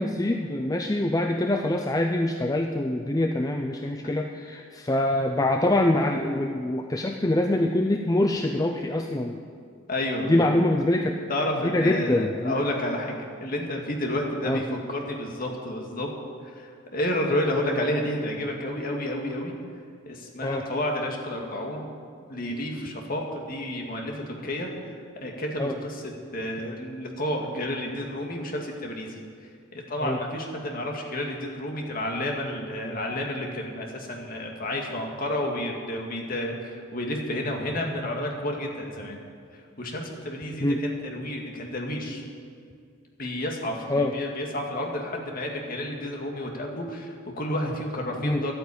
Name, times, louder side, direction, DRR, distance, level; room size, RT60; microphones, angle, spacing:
voice 1, 0.0-9.4 10.3-11.2 11.6-12.6 14.5-14.6 20.4-20.6 25.6-25.7 30.0-30.2 40.6-40.8 43.9-44.1 48.2-48.4, left 1 dB, 20° left, 3 dB, 0.5 m, -24 dB
voice 2, 9.9-10.6 11.3-13.1 13.4-16.1 16.4-19.5 20.1-21.9 22.3-24.7 25.2-29.2 29.7-39.2 39.8-42.2 43.2-48.5, left 1 dB, 45° left, 1 dB, 2.1 m, -30 dB
12.0 x 9.4 x 8.6 m, 2.3 s
head